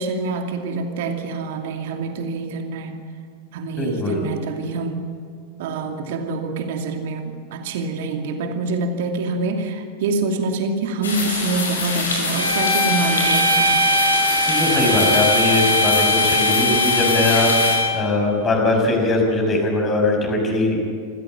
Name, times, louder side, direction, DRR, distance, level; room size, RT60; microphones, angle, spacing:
voice 1, 0.0-2.9 3.5-5.0 5.6-13.8, right 3 dB, 55° right, 4 dB, 2.6 m, -26 dB
voice 2, 3.8-4.2 14.5-20.9, left 2 dB, 25° left, 1 dB, 6.3 m, -21 dB
sound 1, 11.0-17.8, left 3 dB, 70° left, 5.6 m, -25 dB
sound 2, 12.3-18.1, left 1 dB, 85° right, 3.1 m, -20 dB
27.0 x 15.5 x 7.6 m, 2.3 s
figure-of-eight pair, 90°, 0 cm